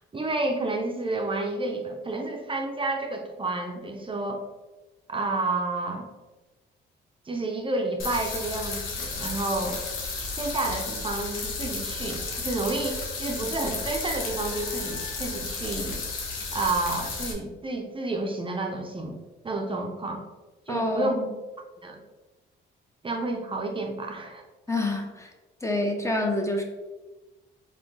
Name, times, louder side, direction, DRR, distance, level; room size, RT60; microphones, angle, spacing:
voice 1, 0.1-4.4 5.1-6.1 7.3-9.8 10.4-16.0 16.5-19.2 19.4-20.2 20.7-21.1 21.8-22.0 23.0-24.4, right 2 dB, 25° right, 2 dB, 0.6 m, -30 dB
sound 1, 8.0-17.3, left 4 dB, 85° left, 1.0 m, -33 dB
voice 2, 20.7-21.3 24.7-25.3 25.6-26.6, left 1 dB, 15° left, 2 dB, 0.7 m, -27 dB
4.2 x 3.4 x 3.2 m, 1.1 s
cardioid pair, 90°, 20 cm